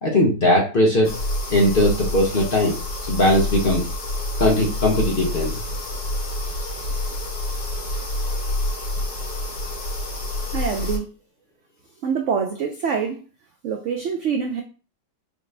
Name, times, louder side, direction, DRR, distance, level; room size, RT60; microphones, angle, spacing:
voice 1, 0.0-1.1 1.5-2.7 3.1-3.9 4.4-5.6, left 1 dB, 45° left, -1 dB, 0.7 m, -19 dB
sound 1, 1.0-11.0, left 1 dB, 60° left, 1.7 m, -28 dB
voice 2, 10.5-11.1 12.0-13.2 13.6-14.6, right 6 dB, 85° right, 3 dB, 0.6 m, -25 dB
4.9 x 2.5 x 3.2 m, 0.35 s
omnidirectional pair, 1.9 m